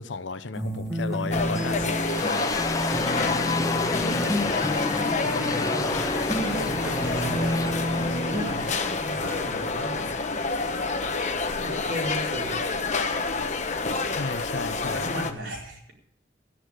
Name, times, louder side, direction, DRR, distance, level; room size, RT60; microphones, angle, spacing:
voice 1, 0.0-1.9 8.2-8.3 14.2-15.1, left 4 dB, 75° left, 0.8 m, -34 dB
sound 1, 0.6-8.6, equal, 5° right, 1.6 m, -30 dB
sound 2, 1.3-15.3, left 3 dB, 40° left, 1.1 m, -28 dB
voice 2, 1.4-1.8 3.1-4.3 5.2-6.0 6.4-7.4 7.9-10.2 11.5-12.7 14.9-15.9, right 1 dB, 75° right, 4.5 m, -37 dB
sound 3, 1.6-12.6, left 3 dB, 20° left, 0.5 m, -33 dB
14.0 x 10.0 x 6.6 m
head